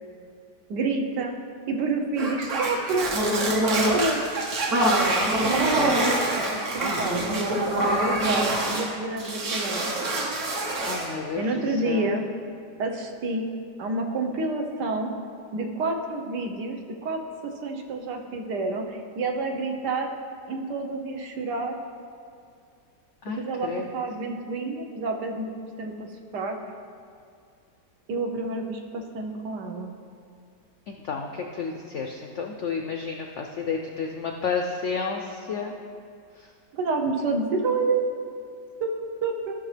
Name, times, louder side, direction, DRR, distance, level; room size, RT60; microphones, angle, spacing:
voice 1, 0.7-1.4 1.7-3.1 3.6-4.2 5.4-7.4 7.8-9.8 11.4-12.2 12.8-13.5 13.8-15.1 15.5-20.1 20.5-21.8 23.4-26.1 26.3-26.6 28.1-29.9 36.7-38.1 38.8-39.5, right 3 dB, 75° right, 3 dB, 1.5 m, -29 dB
sound 1, 2.2-8.9 9.2-11.1, right 1 dB, 50° right, 1.3 m, -25 dB
voice 2, 5.4-5.9 10.8-11.5 11.9-12.1 23.2-23.9 30.9-35.7 36.4-36.5, left 5 dB, 75° left, 3 dB, 0.6 m, -31 dB
15.0 x 6.1 x 3.3 m, 2.4 s
omnidirectional pair, 1.9 m